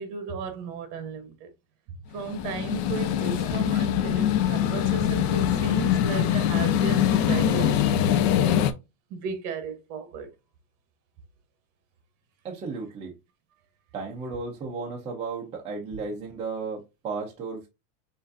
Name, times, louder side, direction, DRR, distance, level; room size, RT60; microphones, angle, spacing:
voice 1, 0.0-1.5 2.1-8.1 9.1-10.3, right 5 dB, 40° right, 1.1 m, -35 dB
sound 1, 2.2-8.7, left 10 dB, 50° left, 0.5 m, -23 dB
voice 2, 12.4-13.1 13.9-17.7, right 4 dB, 15° right, 0.5 m, -34 dB
6.1 x 2.7 x 2.5 m
supercardioid pair, 160°, 43 cm